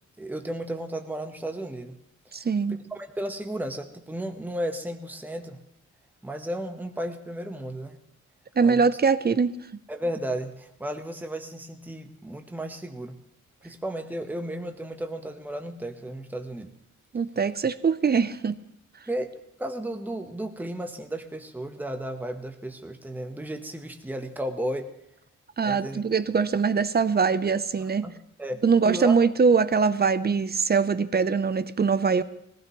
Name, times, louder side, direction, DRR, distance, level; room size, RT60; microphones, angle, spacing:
voice 1, 0.2-2.0 2.2-5.6 6.2-8.0 8.6-8.9 9.9-13.2 13.6-16.7 19.1-19.3 19.6-24.9 25.6-26.0 27.8-29.2, right 1 dB, 5° right, 6 dB, 1.0 m, -34 dB
voice 2, 2.3-2.8 8.6-9.5 17.1-18.6 25.6-28.1 28.6-32.2, right 5 dB, 30° right, 14 dB, 0.6 m, -22 dB
20.0 x 16.0 x 3.0 m, 0.78 s
wide cardioid pair, 105°, 31 cm